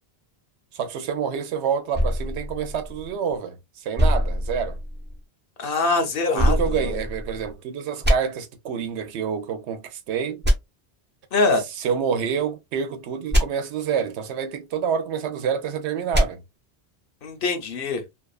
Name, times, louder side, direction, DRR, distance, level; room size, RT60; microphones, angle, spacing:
voice 1, 0.7-4.8 6.3-10.4 11.8-16.4, right 7 dB, 90° right, 0.9 m, -27 dB
sound 1, 1.9-3.4 4.0-5.2 6.4-7.5 8.0-8.1 10.4-10.5 13.3-13.4 16.1-16.3, equal, 15° right, 0.5 m, -23 dB
voice 2, 5.6-6.6 6.8-7.0 11.3-11.6 17.2-18.0, left 3 dB, 60° left, 0.8 m, -23 dB
2.6 x 2.3 x 2.3 m
omnidirectional pair, 1.1 m